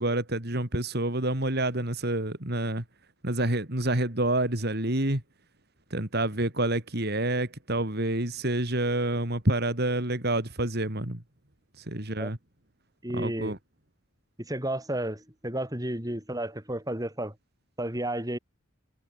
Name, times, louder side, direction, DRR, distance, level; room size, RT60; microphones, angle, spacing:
voice 1, 0.0-2.8 3.2-5.2 5.9-11.2 11.8-12.4 13.1-13.6, right 1 dB, 50° right, 3.5 m, -28 dB
voice 2, 13.0-13.6 14.4-17.3 17.8-18.4, right 1 dB, 20° right, 5.6 m, -32 dB
head